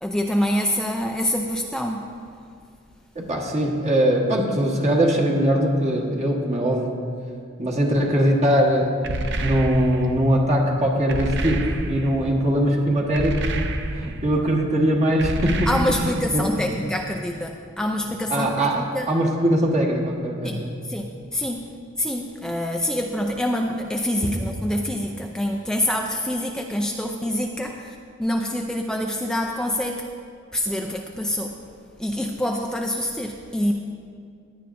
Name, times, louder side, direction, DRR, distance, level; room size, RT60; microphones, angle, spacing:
voice 1, 0.0-2.1 15.7-19.1 20.4-21.1 21.3-21.7 22.0-30.1 30.5-31.6 32.0-33.7, left 1 dB, 5° left, 2 dB, 0.4 m, -26 dB
voice 2, 3.1-7.0 7.6-9.0 9.4-13.5 13.9-15.6 15.9-16.7 18.3-20.7, equal, 30° right, -1 dB, 1.2 m, -21 dB
sound 1, 9.0-10.1 11.1-12.2 13.1-14.2 15.2-16.3, right 2 dB, 55° right, 0.8 m, -28 dB
16.5 x 10.5 x 2.6 m, 2.3 s
head